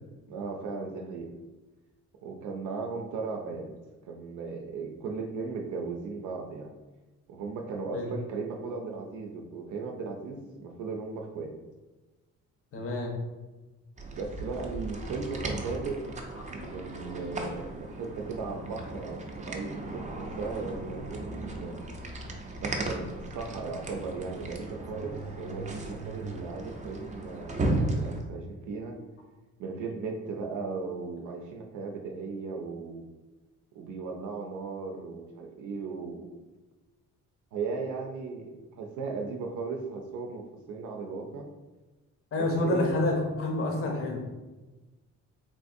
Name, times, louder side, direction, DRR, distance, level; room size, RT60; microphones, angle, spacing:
voice 1, 0.3-1.3 2.2-3.7 4.0-6.7 7.3-11.5 14.2-16.0 16.5-21.8 22.6-29.0 29.6-33.1 33.7-36.3 37.5-41.5 42.4-42.9, right 4 dB, 80° right, 2 dB, 0.5 m, -37 dB
voice 2, 12.7-13.1 42.3-44.3, left 2 dB, 45° left, 0 dB, 0.8 m, -28 dB
sound 1, 14.0-28.2, right 2 dB, 25° right, 0.5 m, -36 dB
3.7 x 2.5 x 2.6 m, 1.2 s
cardioid pair, 90°, 30 cm